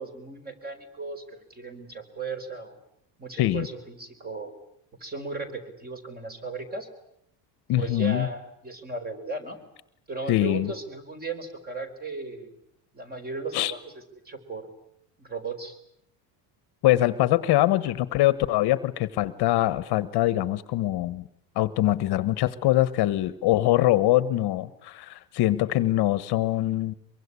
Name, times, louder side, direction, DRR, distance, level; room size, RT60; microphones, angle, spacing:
voice 1, 0.0-2.8 3.2-4.5 5.0-6.9 7.7-9.6 10.1-12.5 12.9-14.7 15.2-15.8, right 3 dB, 20° right, 7 dB, 4.7 m, -36 dB
voice 2, 7.7-8.3 10.3-10.7 13.5-13.7 16.8-21.2 21.5-26.9, left 15 dB, 55° left, 15 dB, 1.3 m, -23 dB
24.0 x 23.5 x 9.8 m, 0.73 s
cardioid pair, 150°, 47 cm